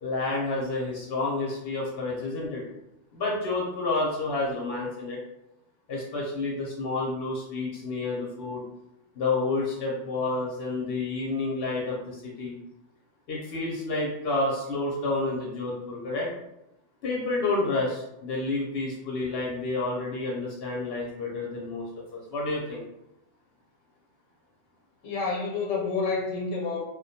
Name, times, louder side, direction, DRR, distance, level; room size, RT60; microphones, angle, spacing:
voice 1, 0.0-2.6 3.1-5.2 5.9-8.6 9.1-12.5 13.3-16.3 17.0-21.8 22.1-22.8, left 3 dB, 60° left, -4 dB, 0.8 m, -29 dB
voice 2, 25.0-26.8, left 4 dB, 90° left, -1 dB, 0.9 m, -29 dB
2.3 x 2.1 x 2.7 m, 0.88 s
omnidirectional pair, 1.3 m